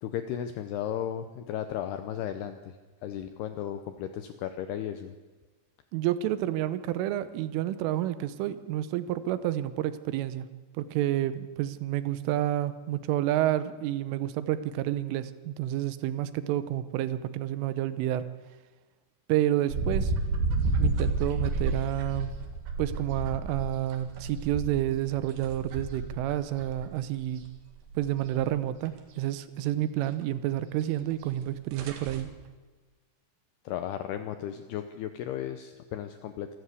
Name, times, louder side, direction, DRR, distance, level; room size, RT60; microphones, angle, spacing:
voice 1, 0.0-2.8 3.0-5.1 33.7-36.5, left 10 dB, 80° left, 9 dB, 2.3 m, -35 dB
voice 2, 5.9-10.5 10.8-18.3 19.3-20.1 20.8-22.3 22.8-27.4 28.0-32.3, right 13 dB, 80° right, 13 dB, 3.4 m, -29 dB
sound 1, 19.7-26.8 27.2-28.1 28.4-28.5 28.9-29.0 31.0-31.1 31.4-31.5 31.7-32.2, right 3 dB, 65° right, 3.8 m, -31 dB
26.0 x 13.0 x 8.2 m, 1.3 s
omnidirectional pair, 5.7 m